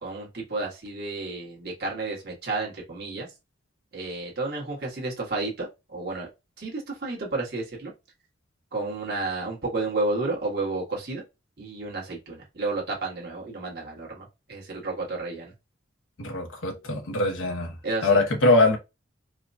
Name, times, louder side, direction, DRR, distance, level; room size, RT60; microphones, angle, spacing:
voice 1, 0.0-3.3 3.9-6.3 6.6-7.9 8.7-11.2 11.6-15.5 17.8-18.2, right 3 dB, 55° right, 1.5 m, -31 dB
voice 2, 16.2-17.7 18.0-18.8, left 2 dB, 90° left, 1.0 m, -22 dB
4.8 x 2.2 x 2.7 m
head